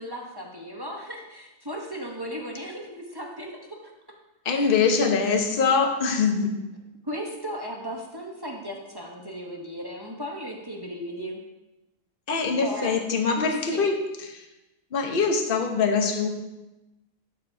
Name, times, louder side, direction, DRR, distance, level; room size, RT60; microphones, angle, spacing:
voice 1, 0.0-3.9 4.5-4.9 7.0-11.4 12.6-12.9 13.3-13.9, equal, 20° right, 0 dB, 0.6 m, -36 dB
voice 2, 4.4-6.5 12.3-13.9 14.3-14.4 14.9-16.3, left 5 dB, 40° left, 4 dB, 1.0 m, -23 dB
12.0 x 7.6 x 2.7 m, 1.0 s
omnidirectional pair, 1.8 m